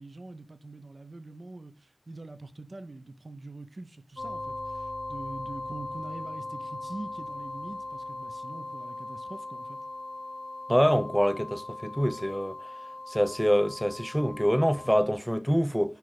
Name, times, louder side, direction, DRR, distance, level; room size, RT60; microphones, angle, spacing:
voice 1, 0.0-9.8, right 2 dB, 70° right, 0.7 m, -44 dB
sound 1, 4.2-15.0, left 2 dB, 35° left, 1.3 m, -39 dB
voice 2, 10.7-12.6 13.1-16.0, equal, ahead, 0.6 m, -25 dB
6.1 x 3.5 x 4.8 m
wide cardioid pair, 40°, 0 cm